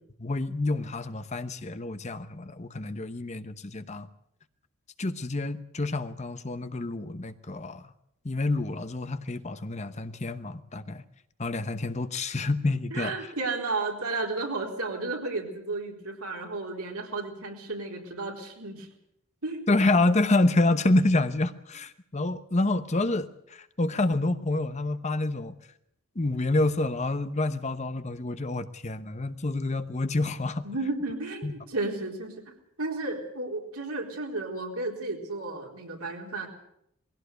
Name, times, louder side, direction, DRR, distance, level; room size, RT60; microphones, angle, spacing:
voice 1, 0.2-4.1 5.0-7.9 8.2-11.0 11.4-13.1 19.7-25.5 26.2-30.6 31.4-31.5, left 2 dB, 30° left, 11 dB, 0.9 m, -28 dB
voice 2, 12.9-18.9 19.4-19.6 30.6-32.3 32.8-36.5, right 3 dB, 90° right, 1 dB, 4.1 m, -33 dB
20.5 x 17.0 x 8.2 m, 0.77 s
head